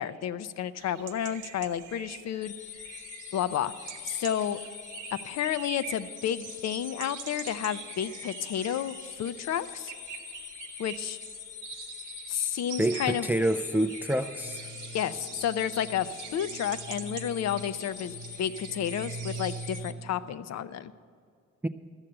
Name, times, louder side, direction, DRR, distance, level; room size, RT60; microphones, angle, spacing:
voice 1, 0.0-2.5 3.3-3.7 4.0-4.6 5.1-9.9 10.8-11.2 12.3-13.3 14.9-20.9, left 9 dB, 60° left, 14 dB, 0.6 m, -31 dB
sound 1, 0.8-19.8, right 9 dB, 85° right, 0.9 m, -45 dB
sound 2, 2.4-19.9, left 10 dB, 75° left, 1.1 m, -45 dB
voice 2, 12.8-14.7 21.6-21.7, right 1 dB, 5° right, 10 dB, 0.4 m, -27 dB
sound 3, 14.4-20.3, right 3 dB, 40° left, 1.1 m, -43 dB
14.0 x 6.6 x 8.7 m, 2.2 s
cardioid pair, 90°, 30 cm